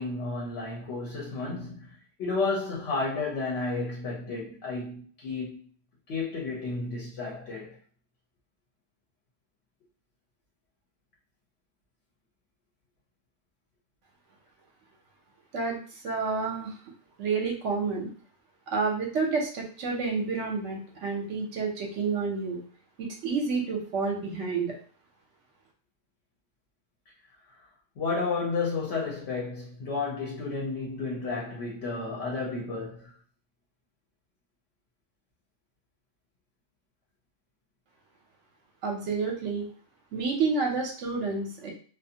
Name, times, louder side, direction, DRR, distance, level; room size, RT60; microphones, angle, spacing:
voice 1, 0.0-5.6 6.1-7.7 28.0-33.1, left 3 dB, 65° left, 0.9 m, -32 dB
voice 2, 16.0-16.7 17.2-18.1 18.7-22.6 23.0-24.8 38.8-39.6 40.1-41.7, right 4 dB, 75° right, 1.0 m, -29 dB
2.5 x 2.3 x 2.7 m
omnidirectional pair, 1.2 m